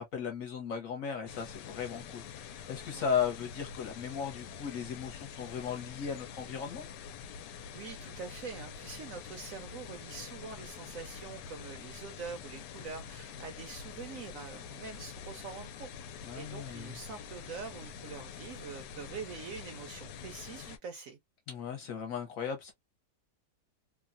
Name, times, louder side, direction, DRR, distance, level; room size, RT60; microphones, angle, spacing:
voice 1, 0.0-6.8 16.2-17.0 21.5-22.7, left 7 dB, 60° left, 1.1 m, -36 dB
sound 1, 1.3-20.8, left 7 dB, 85° left, 1.2 m, -46 dB
voice 2, 7.7-15.9 16.3-21.2, right 5 dB, 65° right, 0.9 m, -44 dB
3.0 x 2.2 x 2.4 m
omnidirectional pair, 1.8 m